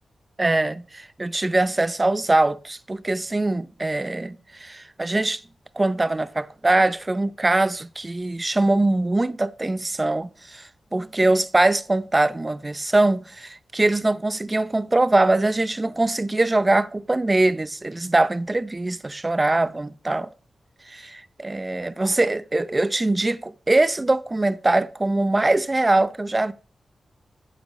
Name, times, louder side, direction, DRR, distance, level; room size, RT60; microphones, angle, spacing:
voice 1, 0.4-5.4 5.8-20.3 20.9-26.5, right 2 dB, 25° right, 0.6 m, -22 dB
8.6 x 8.4 x 5.2 m
wide cardioid pair, 85°, 0 cm